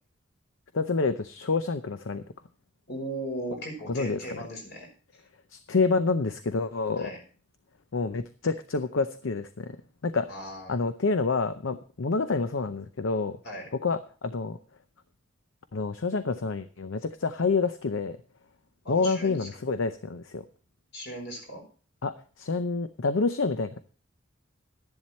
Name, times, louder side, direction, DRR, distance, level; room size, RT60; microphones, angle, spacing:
voice 1, 0.7-2.2 3.9-4.4 5.5-7.1 7.9-9.8 10.0-10.4 10.7-13.4 13.7-14.6 15.7-18.2 18.9-20.4 22.0-23.8, left 4 dB, 75° left, 11 dB, 0.7 m, -28 dB
voice 2, 2.9-4.9 7.0-7.2 10.3-10.7 13.4-13.7 18.8-19.5 20.9-21.6, right 1 dB, 60° left, 2 dB, 5.5 m, -37 dB
12.5 x 11.0 x 4.3 m, 0.39 s
head